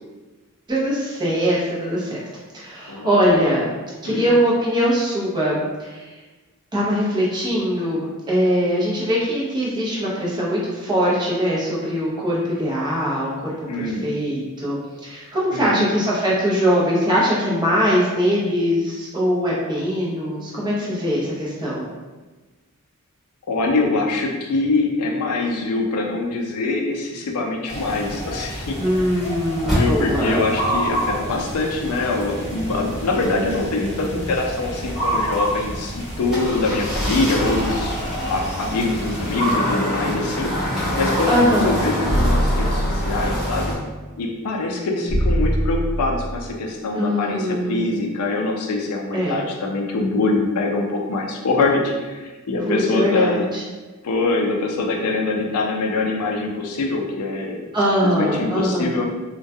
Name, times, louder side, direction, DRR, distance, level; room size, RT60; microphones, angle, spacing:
voice 1, 0.7-2.2 2.5-3.7 4.0-6.1 6.7-21.9 28.8-30.5 41.3-41.7 46.9-48.0 49.1-49.4 52.6-53.6 57.7-58.9, equal, 20° right, -6 dB, 0.6 m, -21 dB
voice 2, 2.9-3.2 4.0-4.3 13.7-14.1 15.5-15.9 23.5-28.8 29.6-38.0 38.3-43.7 44.2-53.5 54.0-57.6 58.0-59.0, left 3 dB, 85° left, 1 dB, 0.4 m, -24 dB
sound 1, 27.7-39.6, right 1 dB, 30° left, 0.7 m, -29 dB
sound 2, 29.7-43.7, equal, ahead, 0.9 m, -27 dB
sound 3, 42.1-43.5 45.1-46.5, equal, 80° right, 0.7 m, -22 dB
2.2 x 2.2 x 2.6 m, 1.2 s
head